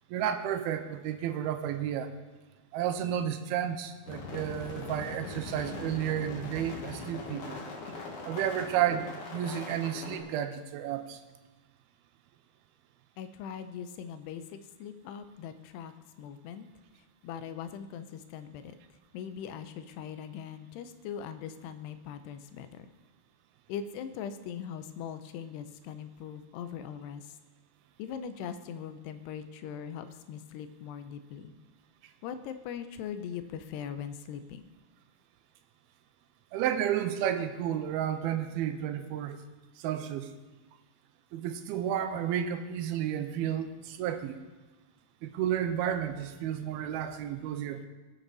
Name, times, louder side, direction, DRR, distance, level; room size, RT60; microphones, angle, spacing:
voice 1, 0.1-2.1 2.7-7.6 8.3-11.2 36.5-39.4 39.8-40.3 41.3-44.3 45.2-47.9, right 10 dB, 80° right, 8 dB, 2.5 m, -32 dB
sound 1, 4.1-10.2, left 3 dB, 55° left, 1.7 m, -41 dB
voice 2, 13.2-15.9 16.2-16.7 17.2-18.8 19.1-22.9 23.7-27.4 28.0-31.5 32.2-34.7, left 8 dB, 90° left, 10 dB, 2.8 m, -41 dB
19.5 x 7.0 x 4.0 m, 1.2 s
omnidirectional pair, 4.6 m